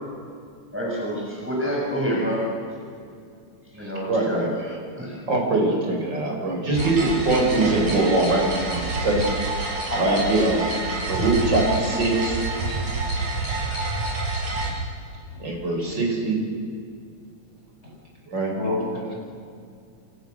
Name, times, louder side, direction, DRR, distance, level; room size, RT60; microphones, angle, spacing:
voice 1, 0.7-2.4 3.7-4.6 5.0-5.2, equal, 5° right, -3 dB, 6.9 m, -27 dB
voice 2, 3.8-4.8 5.3-10.7 11.1-12.4 15.4-16.4 18.3-18.5, right 2 dB, 35° right, 0 dB, 6.5 m, -23 dB
sound 1, 6.7-14.7, right 2 dB, 75° right, 6.7 m, -28 dB
voice 3, 9.9-10.2 12.7-12.8 14.6-14.7 15.3-15.4 18.5-19.1, left 1 dB, 20° left, -4 dB, 6.8 m, -28 dB
29.0 x 27.5 x 6.7 m, 2.4 s
omnidirectional pair, 3.5 m